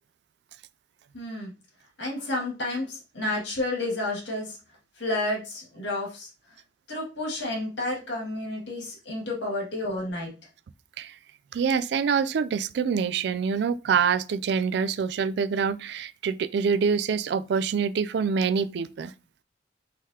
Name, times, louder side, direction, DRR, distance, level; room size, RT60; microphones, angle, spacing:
voice 1, 1.1-1.5 2.0-4.6 5.0-6.3 6.9-10.3, left 2 dB, 85° left, 2.1 m, -30 dB
voice 2, 11.5-19.1, right 6 dB, 65° right, 0.3 m, -25 dB
4.7 x 3.8 x 2.8 m
head